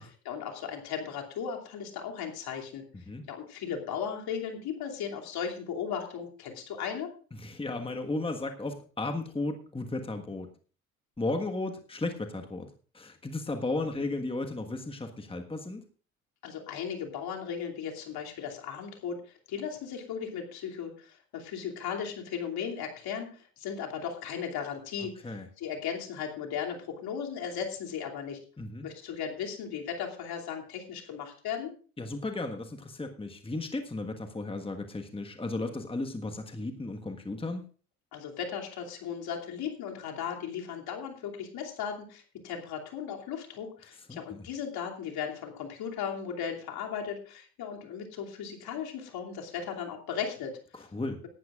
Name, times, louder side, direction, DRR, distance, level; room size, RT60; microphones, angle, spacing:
voice 1, 0.0-2.8 3.3-7.1 16.4-28.4 28.8-31.7 38.1-50.9, left 7 dB, 60° left, 1 dB, 2.9 m, -36 dB
voice 2, 7.4-10.5 11.2-12.7 12.9-15.8 25.2-25.5 28.6-28.9 32.0-37.6 44.1-44.4 50.7-51.2, left 2 dB, 15° left, 5 dB, 1.5 m, -34 dB
18.0 x 12.0 x 2.5 m, 0.39 s
hypercardioid pair, 60°, 42 cm